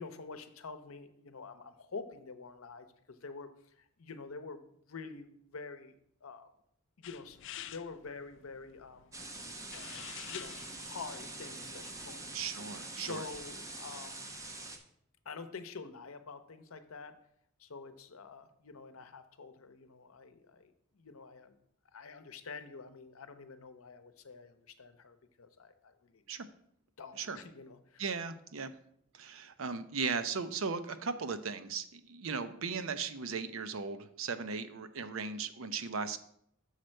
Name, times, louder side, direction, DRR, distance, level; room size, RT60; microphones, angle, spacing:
voice 1, 0.0-6.5 7.0-9.1 9.7-12.4 13.0-14.4 15.2-17.2 17.6-21.6 21.9-26.2 27.0-28.1, left 4 dB, 85° left, 9 dB, 0.7 m, -47 dB
sound 1, 7.0-12.5, left 12 dB, 60° left, 0.3 m, -50 dB
sound 2, 9.1-14.8, right 2 dB, 15° right, 0.8 m, -45 dB
voice 2, 12.3-13.2 26.3-26.4 27.2-27.4 28.0-28.7 29.1-36.2, right 5 dB, 70° right, 11 dB, 0.6 m, -37 dB
6.5 x 4.4 x 6.4 m, 0.70 s
head